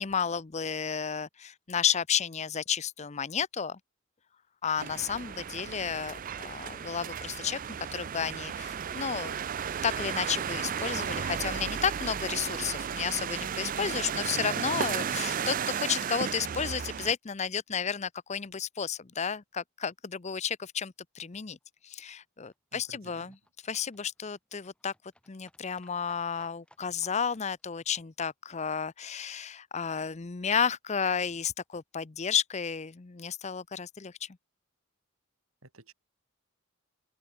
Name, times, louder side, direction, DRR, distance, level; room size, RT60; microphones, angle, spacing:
voice 1, 0.0-3.8 4.6-7.6 7.9-9.4 9.8-21.6 21.8-23.4 23.6-24.9 25.3-34.3, left 7 dB, 35° left, 0.6 m, -32 dB
sound 1, 4.8-17.1, right 7 dB, 40° right, 0.4 m, -34 dB
Livestock farm animals working animals, 21.6-29.8 30.1-30.2 30.4-30.5 30.7-30.8 31.0-31.1 31.3-31.4 31.6-31.7 32.0-32.1 32.3-32.4, left 1 dB, 5° left, 7.8 m, -66 dB
voice 2, 22.7-23.4 35.6-35.9, right 2 dB, 80° right, 4.2 m, -52 dB
open air
head